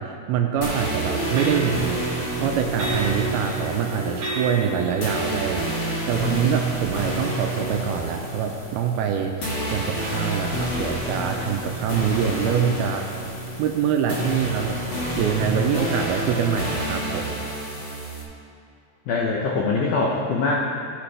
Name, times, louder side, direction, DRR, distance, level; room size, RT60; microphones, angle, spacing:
voice 1, 0.0-2.0 2.3-13.1 13.6-14.8 15.2-17.4, right 8 dB, 80° right, 3 dB, 2.4 m, -25 dB
sound 1, 0.6-18.2, equal, 45° left, 1.8 m, -29 dB
sound 2, 0.8-6.1, right 4 dB, 35° right, 2.6 m, -31 dB
voice 2, 19.1-20.6, left 3 dB, 90° left, -2 dB, 1.7 m, -23 dB
15.5 x 8.6 x 3.3 m, 2.6 s
omnidirectional pair, 4.8 m